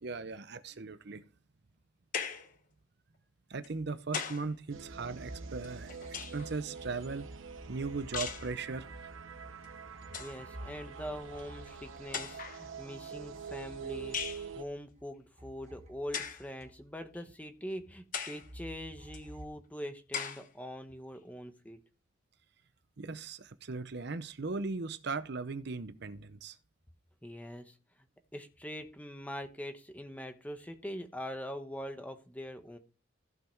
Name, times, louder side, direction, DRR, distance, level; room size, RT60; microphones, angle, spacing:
voice 1, 0.0-1.2 3.5-7.3 7.7-9.1 23.0-26.6, right 4 dB, 55° right, 0.7 m, -38 dB
sound 1, 2.1-2.5 3.6-4.5 5.6-6.5 8.1-8.5 9.6-9.7 10.0-10.4 11.4-11.5 12.1-12.6 14.1-14.5 16.1-16.5 17.1-17.2 18.1-18.5 19.1-19.2 20.1-20.5, left 7 dB, 45° left, 1.0 m, -38 dB
sound 2, 4.7-14.6, right 6 dB, 85° right, 1.0 m, -46 dB
sound 3, 4.8-15.1 15.4-17.2 18.4-19.5, right 1 dB, 35° right, 1.3 m, -51 dB
voice 2, 10.1-21.8 27.2-27.8 28.3-32.8, equal, 10° left, 1.1 m, -43 dB
15.0 x 5.6 x 4.5 m
head